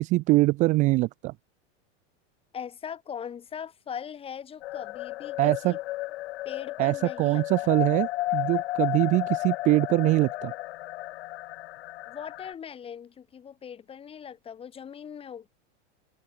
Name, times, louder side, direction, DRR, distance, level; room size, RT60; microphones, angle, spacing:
voice 1, 0.0-1.3 5.4-5.8 6.8-10.5, right 20 dB, 20° right, 0.6 m, -23 dB
voice 2, 2.5-5.8 6.4-7.7 12.1-15.5, left 8 dB, 15° left, 6.4 m, -40 dB
sound 1, 4.6-12.5, left 17 dB, 60° left, 2.4 m, -33 dB
supercardioid pair, 175°, 36 cm